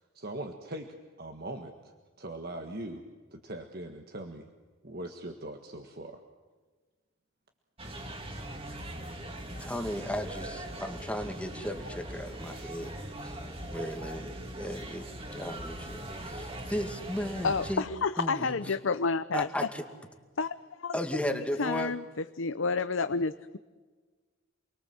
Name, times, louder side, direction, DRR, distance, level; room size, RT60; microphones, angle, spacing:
voice 1, 0.0-3.0 3.3-4.5 4.8-6.2, right 1 dB, 50° right, 4 dB, 1.7 m, -41 dB
sound 1, 7.8-17.8, right 1 dB, 30° right, 2.7 m, -41 dB
voice 2, 9.3-12.9 13.2-13.4 13.7-17.8 18.2-18.7 19.3-19.8 20.9-21.9, left 1 dB, 5° left, 5 dB, 2.2 m, -35 dB
voice 3, 17.4-19.5 20.4-20.5 20.8-21.0 21.6-22.0 22.4-23.6, left 4 dB, 80° left, 11 dB, 0.7 m, -29 dB
29.0 x 22.5 x 7.8 m, 1.4 s
head